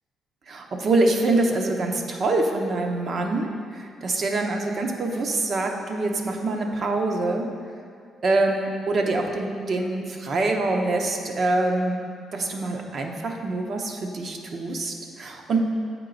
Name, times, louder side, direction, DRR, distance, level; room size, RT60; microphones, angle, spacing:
voice 1, 0.5-7.5 8.2-12.0 12.3-15.6, right 2 dB, 50° right, 2 dB, 0.8 m, -25 dB
8.1 x 4.5 x 3.9 m, 2.2 s
cardioid pair, 90°, 0 cm